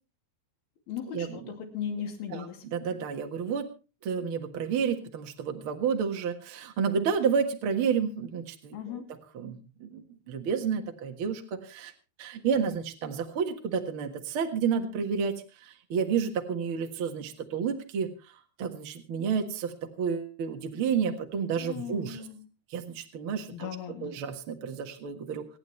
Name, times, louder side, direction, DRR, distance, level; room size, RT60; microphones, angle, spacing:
voice 1, 0.9-2.6 8.7-9.1 21.6-22.4 23.5-24.1, left 8 dB, 65° left, 5 dB, 4.1 m, -37 dB
voice 2, 2.3-3.7 4.0-9.0 9.3-11.9 12.2-15.3 15.6-18.1 18.6-22.2 22.7-23.7 24.0-25.4, right 6 dB, 55° right, 3 dB, 1.5 m, -30 dB
27.5 x 9.6 x 3.2 m, 0.33 s
omnidirectional pair, 4.8 m